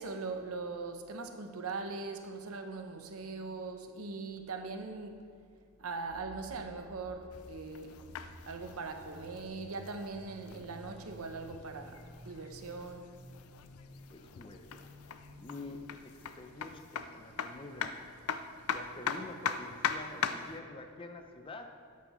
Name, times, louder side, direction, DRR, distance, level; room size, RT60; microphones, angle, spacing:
voice 1, 0.0-5.3 5.8-8.0 8.5-13.1, right 3 dB, 80° right, 6 dB, 0.8 m, -41 dB
sound 1, 6.1-15.8, equal, 55° left, 2.6 m, -54 dB
sound 2, 7.3-20.6, left 7 dB, 80° left, 0.4 m, -41 dB
voice 2, 14.1-14.9 15.4-18.1 18.7-21.7, left 2 dB, 25° left, 5 dB, 0.6 m, -47 dB
11.0 x 8.5 x 3.1 m, 2.1 s
head